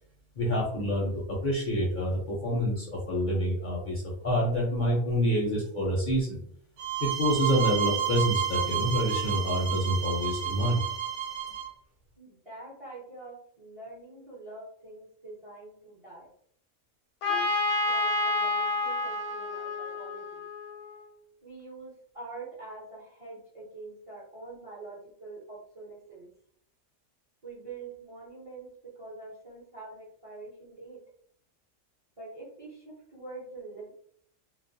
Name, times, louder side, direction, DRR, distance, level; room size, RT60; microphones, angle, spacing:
voice 1, 0.4-6.4 7.0-10.8, equal, 50° left, -3 dB, 0.6 m, -27 dB
sound 1, 6.8-11.7, right 10 dB, 75° right, 0.9 m, -31 dB
voice 2, 12.2-16.3 17.3-17.5 17.9-20.4 21.4-26.3 27.4-31.0 32.2-33.9, right 3 dB, 35° right, -5 dB, 0.6 m, -45 dB
Trumpet, 17.2-20.9, left 2 dB, 75° left, 1.0 m, -29 dB
2.3 x 2.1 x 2.5 m, 0.62 s
omnidirectional pair, 1.3 m